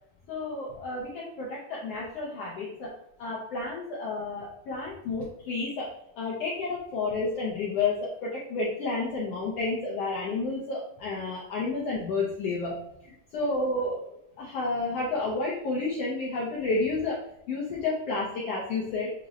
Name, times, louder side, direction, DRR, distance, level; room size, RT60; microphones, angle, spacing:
voice 1, 0.3-2.9 3.2-5.9 6.2-14.1 14.4-17.2 17.5-19.1, left 3 dB, 70° left, -4 dB, 1.5 m, -31 dB
7.0 x 3.0 x 2.5 m, 0.75 s
omnidirectional pair, 3.6 m